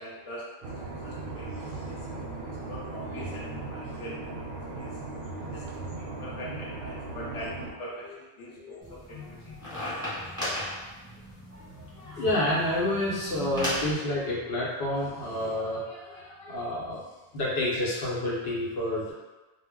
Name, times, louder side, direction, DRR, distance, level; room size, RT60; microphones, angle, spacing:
voice 1, 0.0-2.1 2.7-5.0 5.5-5.7 6.0-10.3, equal, 40° left, -6 dB, 0.5 m, -43 dB
sound 1, 0.6-7.7, right 3 dB, 60° right, 0.7 m, -37 dB
voice 2, 8.6-8.9 9.6-9.7 10.4-10.5 11.5-17.0 17.3-19.1, left 1 dB, 75° left, -6 dB, 1.0 m, -30 dB
sound 2, 8.8-13.9, equal, 5° left, 1.1 m, -36 dB
2.1 x 2.1 x 3.5 m, 1.2 s
omnidirectional pair, 1.1 m